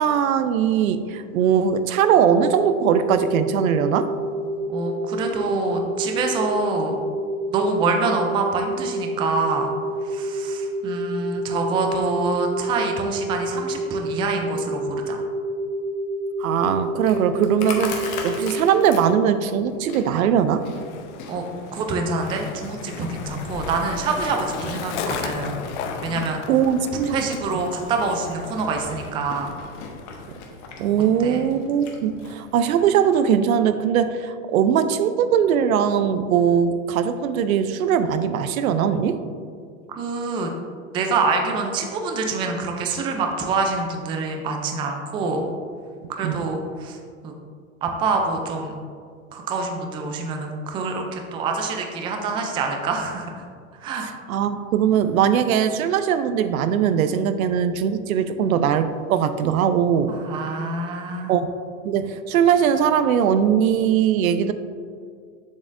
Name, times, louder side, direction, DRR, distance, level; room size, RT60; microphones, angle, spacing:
voice 1, 0.0-4.1 16.4-20.7 26.5-27.2 30.3-30.4 30.8-39.2 46.2-46.4 54.3-60.1 61.3-61.5 61.8-64.5, right 8 dB, 85° right, 11 dB, 0.6 m, -20 dB
sound 1, 1.9-19.2, right 1 dB, 30° right, 1.1 m, -28 dB
voice 2, 4.7-6.9 7.5-9.7 10.0-15.2 21.3-21.4 21.7-25.5 26.0-26.4 27.1-29.5 31.2-31.4 39.9-40.5 40.9-45.5 46.1-47.0 47.2-47.3 47.8-48.7 49.3-53.3 53.8-54.1 60.1-61.3, right 3 dB, 15° right, 3 dB, 0.3 m, -26 dB
Chewing mastication, 16.4-32.0, left 4 dB, 45° left, 1.1 m, -40 dB
Skateboard, 20.1-32.8, left 5 dB, 60° left, 0.7 m, -36 dB
7.2 x 6.1 x 2.5 m, 2.1 s
hypercardioid pair, 125°, 41 cm